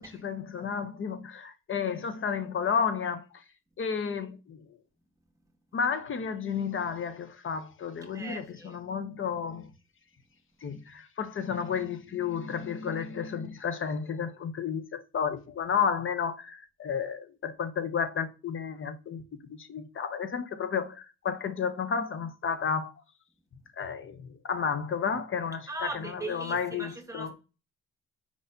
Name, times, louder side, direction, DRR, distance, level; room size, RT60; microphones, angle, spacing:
voice 1, 0.0-3.4 3.8-4.6 5.7-9.7 10.6-19.2 19.5-22.9 23.8-27.3, left 6 dB, 45° left, 0.7 m, -32 dB
voice 2, 8.1-8.8 25.7-27.3, right 2 dB, 10° right, 1.2 m, -39 dB
4.7 x 4.0 x 2.7 m
cardioid pair, 90°, 30 cm